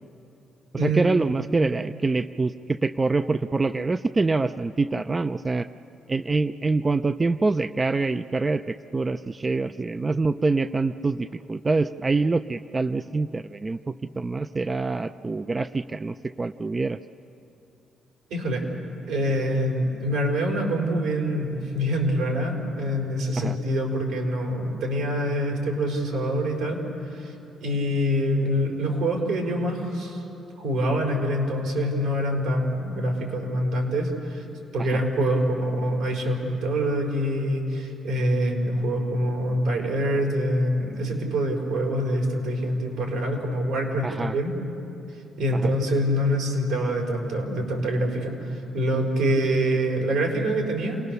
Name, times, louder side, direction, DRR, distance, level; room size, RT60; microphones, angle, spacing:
voice 1, 0.7-5.7 6.1-17.0 23.4-23.6 34.8-35.0 44.0-44.4 45.5-45.7, right 3 dB, 25° right, 11 dB, 0.4 m, -25 dB
voice 2, 18.3-18.6 19.1-26.8 27.0-27.3 27.6-30.2 30.6-34.4 34.7-44.5 45.4-51.0, equal, 90° right, 0 dB, 4.7 m, -25 dB
28.0 x 19.0 x 6.8 m, 2.9 s
cardioid pair, 90°, 0 cm